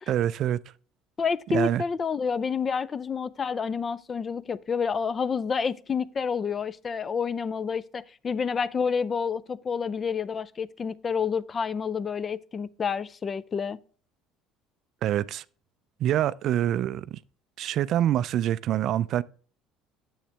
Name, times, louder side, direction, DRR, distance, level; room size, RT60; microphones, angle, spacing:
voice 1, 0.1-0.6 1.5-1.8 15.0-15.4 16.0-17.2 17.6-19.2, right 11 dB, 60° right, 0.3 m, -25 dB
voice 2, 1.2-13.8, left 6 dB, 30° left, 0.4 m, -29 dB
7.2 x 7.2 x 3.3 m
supercardioid pair, 95°, 0 cm